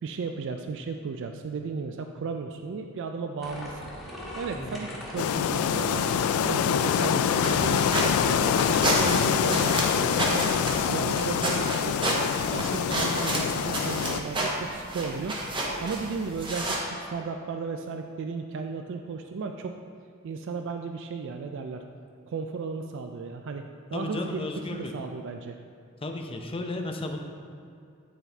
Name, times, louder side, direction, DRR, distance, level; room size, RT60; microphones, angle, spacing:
voice 1, 0.0-3.8 4.3-6.1 6.4-12.0 12.4-19.8 20.2-21.8 22.3-23.6 23.9-24.4 24.7-25.6, right 4 dB, 60° right, 5 dB, 0.3 m, -35 dB
sound 1, 3.4-9.6, equal, ahead, 1.3 m, -40 dB
sound 2, 5.2-14.2, left 8 dB, 80° left, 0.3 m, -25 dB
sound 3, 7.3-16.8, right 1 dB, 25° right, 0.9 m, -31 dB
voice 2, 23.9-24.9 26.0-27.2, left 2 dB, 25° left, 3 dB, 0.6 m, -33 dB
9.2 x 4.1 x 4.4 m, 2.4 s
head